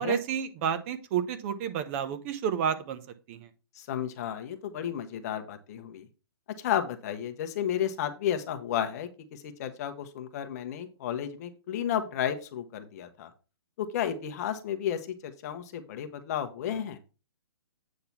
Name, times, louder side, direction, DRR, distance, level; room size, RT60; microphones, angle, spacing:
voice 1, 0.0-3.0 3.3-3.5, right 8 dB, 30° right, 10 dB, 1.0 m, -30 dB
voice 2, 3.8-6.1 6.6-13.3 13.8-17.0, left 9 dB, 40° left, 8 dB, 1.1 m, -32 dB
8.4 x 3.8 x 5.9 m, 0.32 s
hypercardioid pair, 155°, 14 cm